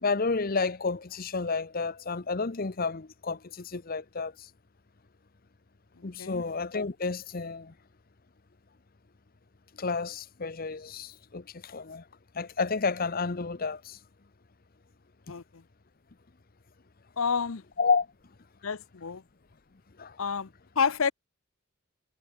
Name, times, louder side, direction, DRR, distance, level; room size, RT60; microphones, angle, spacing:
voice 1, 0.0-4.3 6.0-7.7 9.8-12.0 12.3-14.0 17.8-18.1 20.0-20.2, left 4 dB, 45° left, 0.8 m, -30 dB
voice 2, 15.3-15.6 17.2-17.6 18.6-19.2 20.2-20.5 20.8-21.1, left 6 dB, 75° left, 0.8 m, -29 dB
head